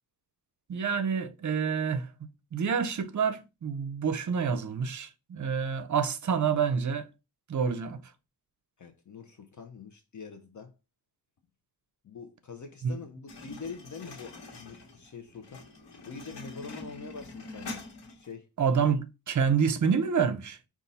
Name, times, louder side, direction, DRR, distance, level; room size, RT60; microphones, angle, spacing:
voice 1, 0.7-2.1 2.5-7.1 7.5-8.0 12.8-12.9 18.6-20.6, right 6 dB, 45° right, 0.6 m, -28 dB
voice 2, 8.8-10.7 12.0-15.6 16.1-17.8 18.1-18.5, left 5 dB, 45° left, 0.6 m, -44 dB
sound 1, 13.3-18.3, left 2 dB, 90° left, 1.3 m, -45 dB
5.2 x 2.4 x 4.1 m
wide cardioid pair, 130°, 40 cm